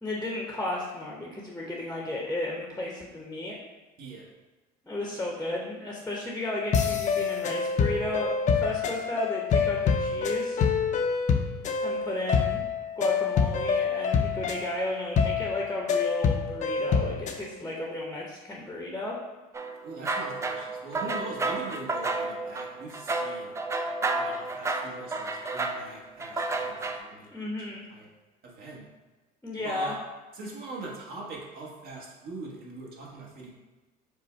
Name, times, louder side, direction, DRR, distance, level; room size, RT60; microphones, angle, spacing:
voice 1, 0.0-3.6 4.8-10.6 11.8-12.6 13.0-19.2 21.0-21.2 27.3-27.8 29.4-30.0, left 1 dB, 10° left, -2 dB, 0.8 m, -34 dB
voice 2, 4.0-4.3 19.8-23.6 24.2-27.3 27.9-28.1 28.4-28.9 29.6-30.0 30.3-33.5, right 3 dB, 55° right, -2 dB, 1.2 m, -42 dB
sound 1, 6.7-17.4, left 6 dB, 40° left, 0.6 m, -26 dB
sound 2, 19.5-27.0, right 3 dB, 15° right, 0.3 m, -31 dB
5.2 x 2.1 x 4.4 m, 1.2 s
supercardioid pair, 90°, 19 cm